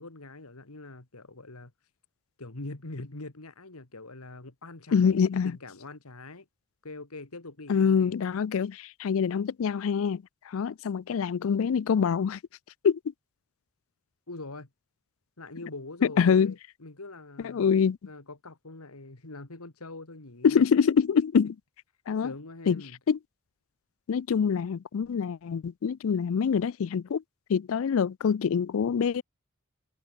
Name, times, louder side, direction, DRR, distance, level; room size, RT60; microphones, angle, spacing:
voice 1, 0.0-1.7 2.4-5.2 5.4-6.5 6.8-8.1 14.3-14.7 15.4-17.7 18.0-20.6 22.2-23.0, left 2 dB, 85° left, 2.2 m, -43 dB
voice 2, 4.9-5.6 7.7-12.4 12.8-13.0 16.2-16.5 17.4-18.0 20.4-21.5 22.1-22.3 22.7-22.8 23.1-23.2 24.1-27.2 27.5-29.2, left 6 dB, 65° left, 0.4 m, -25 dB
head